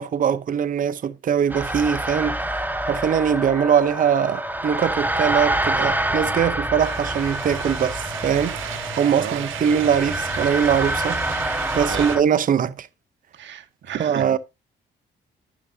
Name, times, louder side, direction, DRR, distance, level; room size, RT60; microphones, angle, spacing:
voice 1, 0.0-2.4 2.8-11.2 11.7-12.9 14.0-14.4, right 8 dB, 45° right, 0.7 m, -22 dB
sound 1, 1.5-12.2, right 1 dB, 10° right, 1.4 m, -26 dB
sound 2, 6.8-12.2, right 12 dB, 85° right, 1.5 m, -35 dB
voice 2, 13.3-14.4, right 9 dB, 65° right, 1.6 m, -33 dB
10.5 x 9.9 x 2.7 m
cardioid pair, 90°, 20 cm